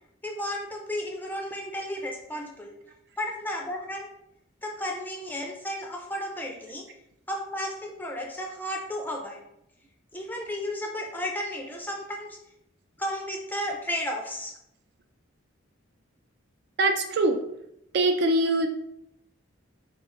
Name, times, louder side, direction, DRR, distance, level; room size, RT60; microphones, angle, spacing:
voice 1, 0.2-2.7 3.2-4.1 4.6-6.9 7.3-9.4 10.1-12.4 13.0-14.5, left 1 dB, 10° left, 1 dB, 0.4 m, -33 dB
voice 2, 16.8-17.4 17.9-18.7, right 2 dB, 55° right, 5 dB, 0.4 m, -22 dB
3.1 x 2.4 x 3.6 m, 0.80 s
head